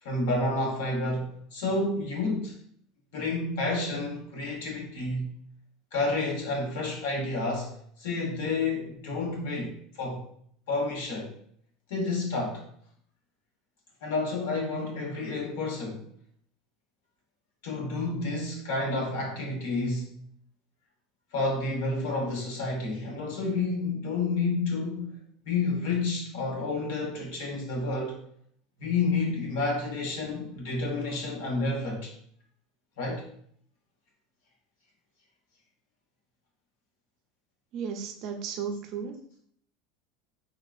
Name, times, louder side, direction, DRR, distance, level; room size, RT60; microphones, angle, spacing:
voice 1, 0.0-2.6 3.1-5.3 5.9-10.2 10.7-11.3 11.9-12.7 14.0-16.0 17.6-20.1 21.3-25.2 25.4-28.2 28.8-32.1 33.0-33.2, left 3 dB, 85° left, -1 dB, 1.0 m, -30 dB
voice 2, 37.7-39.2, right 6 dB, 50° right, 5 dB, 0.4 m, -34 dB
3.6 x 2.4 x 2.4 m, 0.64 s
cardioid pair, 155°, 0 cm